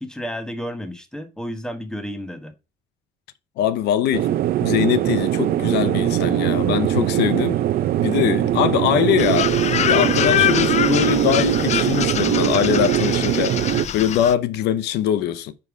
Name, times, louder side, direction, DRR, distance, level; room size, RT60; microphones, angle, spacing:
voice 1, 0.0-2.5, equal, 5° left, 1.3 m, -31 dB
voice 2, 3.6-4.3 4.6-7.6 8.0-9.5 9.8-13.6 13.9-15.5, left 10 dB, 85° left, 0.7 m, -22 dB
sound 1, 4.1-13.9, right 12 dB, 60° right, 0.6 m, -21 dB
sound 2, 9.2-14.3, left 10 dB, 45° left, 0.5 m, -24 dB
5.5 x 5.5 x 4.7 m
cardioid pair, 110°, 17 cm